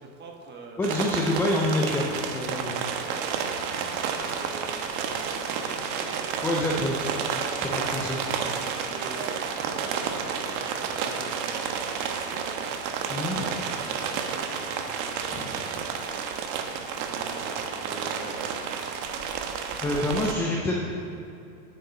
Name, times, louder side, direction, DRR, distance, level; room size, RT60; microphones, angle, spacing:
voice 1, 0.0-0.8 2.9-3.4 4.3-6.4 8.9-12.4 13.3-15.8 16.9-18.9, right 3 dB, 20° right, 1 dB, 1.5 m, -44 dB
voice 2, 0.8-2.8 6.4-7.0 7.6-8.2 13.1-13.5 15.3-15.5 19.8-20.9, left 1 dB, 5° left, -2 dB, 0.4 m, -27 dB
sound 1, 0.8-20.3, right 6 dB, 45° right, 1.2 m, -31 dB
9.2 x 6.5 x 6.8 m, 2.6 s
supercardioid pair, 130°, 47 cm